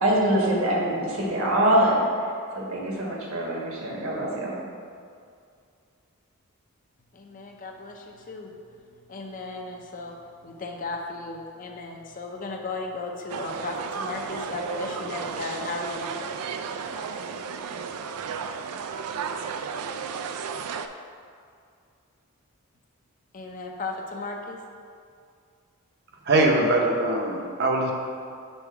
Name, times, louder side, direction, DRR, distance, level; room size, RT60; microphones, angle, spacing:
voice 1, 0.0-2.0 2.5-4.6, right 1 dB, 70° right, -3 dB, 1.4 m, -24 dB
voice 2, 7.1-8.5 9.1-10.1 10.4-16.1 23.3-24.6, left 3 dB, 35° left, 2 dB, 0.5 m, -35 dB
sound 1, 13.3-20.9, right 6 dB, 85° right, 0.4 m, -33 dB
voice 3, 26.3-27.9, right 2 dB, 45° right, 1 dB, 0.8 m, -22 dB
5.4 x 4.6 x 4.6 m, 2.3 s
head